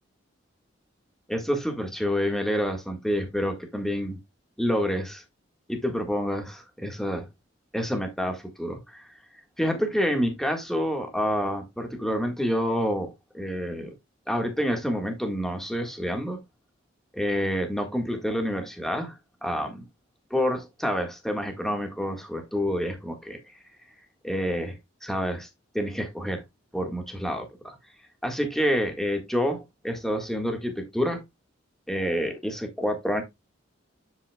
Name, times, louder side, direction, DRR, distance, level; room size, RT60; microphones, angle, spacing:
voice 1, 1.3-4.2 4.6-5.2 5.7-7.3 7.7-9.1 9.6-13.9 14.3-16.4 17.1-19.1 19.4-19.8 20.3-23.4 24.2-25.5 25.7-26.4 26.7-27.7 28.2-31.2 31.9-33.2, equal, ahead, 1.7 m, -28 dB
9.9 x 7.8 x 2.3 m
head